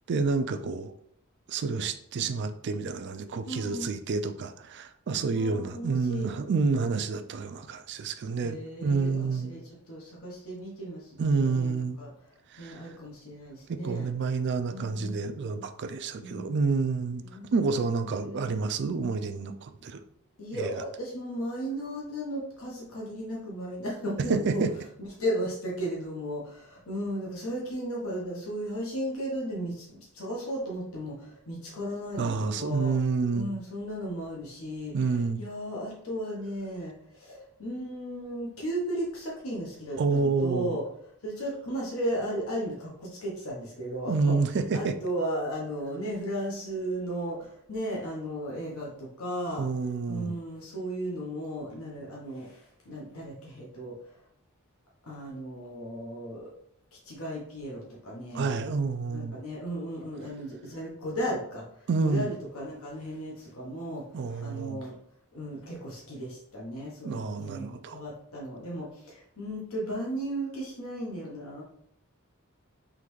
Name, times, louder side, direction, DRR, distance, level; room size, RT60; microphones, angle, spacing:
voice 1, 0.1-0.9 1.5-9.5 11.2-12.0 12.5-12.8 13.7-17.2 17.5-20.0 20.5-20.7 24.3-24.7 32.2-33.5 34.9-35.4 40.0-40.8 44.1-44.9 49.6-50.3 58.3-59.4 61.9-62.3 64.1-64.8 67.0-68.0, right 4 dB, 55° right, 8 dB, 0.4 m, -29 dB
voice 2, 3.5-3.9 5.3-6.3 8.4-14.1 14.7-15.2 16.2-16.6 17.2-18.6 20.4-24.7 25.0-33.0 33.3-40.9 41.2-44.4 44.7-49.7 50.1-54.2 55.0-56.5 56.9-58.5 59.1-64.9 65.3-71.6, equal, 75° left, -3 dB, 1.1 m, -35 dB
3.8 x 3.2 x 3.1 m, 0.70 s
head